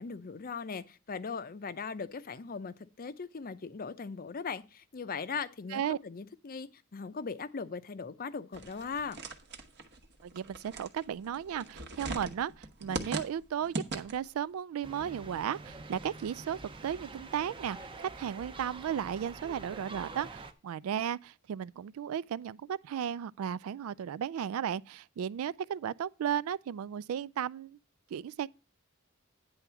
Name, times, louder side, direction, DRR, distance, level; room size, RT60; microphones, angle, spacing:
voice 1, 0.0-9.2, left 5 dB, 45° left, 0.6 m, -39 dB
sound 1, 8.5-14.4, right 2 dB, 55° right, 1.1 m, -40 dB
voice 2, 10.2-27.8 28.1-28.5, right 9 dB, 75° right, 0.3 m, -35 dB
sound 2, 14.8-20.5, right 3 dB, 25° right, 0.7 m, -46 dB
9.8 x 3.5 x 6.8 m
head